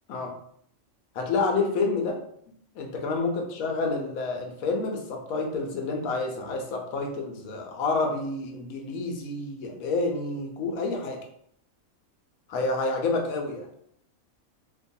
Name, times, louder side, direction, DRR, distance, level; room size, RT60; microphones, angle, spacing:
voice 1, 1.1-2.2 2.7-11.2 12.5-13.7, left 3 dB, 85° left, 2 dB, 1.1 m, -29 dB
2.8 x 2.2 x 2.6 m, 0.68 s
omnidirectional pair, 1.4 m